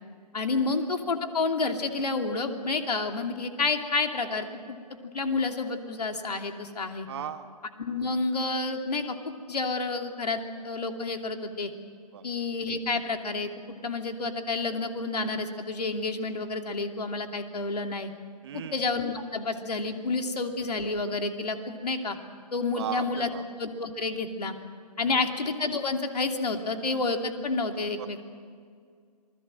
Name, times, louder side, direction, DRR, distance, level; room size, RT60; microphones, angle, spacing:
voice 1, 0.3-4.8 5.1-7.1 7.8-11.7 12.2-13.5 13.8-18.1 18.5-22.2 22.5-23.3 23.6-24.5 25.0-28.2, left 3 dB, 70° left, 5 dB, 2.9 m, -29 dB
voice 2, 7.1-7.5 12.1-12.2 18.4-18.8 22.7-23.4 25.0-25.2 28.0-28.2, right 9 dB, 40° right, 9 dB, 1.6 m, -36 dB
27.0 x 21.0 x 7.7 m, 2.1 s
figure-of-eight pair, 140°, 21 cm